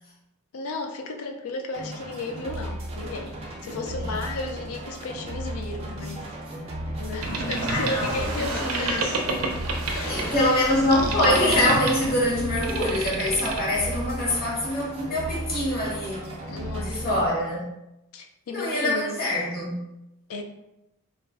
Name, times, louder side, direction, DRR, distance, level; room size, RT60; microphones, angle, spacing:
voice 1, 0.5-6.3 7.0-9.1 9.9-10.4 16.4-17.3 18.1-19.2 20.3-20.4, left 3 dB, 75° left, 5 dB, 0.4 m, -34 dB
sound 1, 1.7-17.3, right 1 dB, 30° right, 0.5 m, -35 dB
Boat Water vehicle, 7.2-14.1, right 2 dB, 85° right, 0.5 m, -30 dB
voice 2, 7.7-9.1 10.0-16.3 16.8-17.6 18.5-19.8, left 1 dB, 45° left, -4 dB, 0.9 m, -24 dB
2.3 x 2.0 x 3.4 m, 0.89 s
head